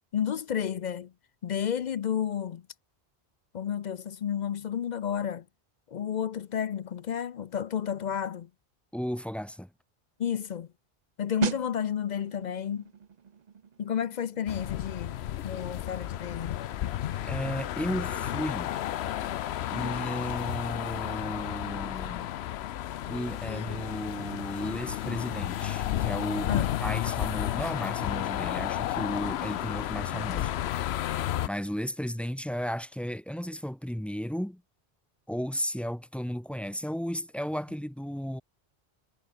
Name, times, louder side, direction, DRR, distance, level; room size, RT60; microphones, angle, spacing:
voice 1, 0.1-1.1 1.4-2.6 3.5-5.4 5.9-8.5 10.2-10.7 11.2-12.9 13.8-15.2 15.4-16.6 26.5-26.8, left 9 dB, 55° left, 0.6 m, -31 dB
voice 2, 8.9-9.7 17.2-18.7 19.7-22.3 23.1-26.5 26.8-30.6 30.9-34.6 35.3-38.4, equal, ahead, 0.3 m, -34 dB
sound 1, 11.4-21.9 22.2-22.4, right 7 dB, 45° right, 0.8 m, -41 dB
sound 2, 14.5-31.5, left 12 dB, 80° left, 0.9 m, -32 dB
omnidirectional pair, 1.1 m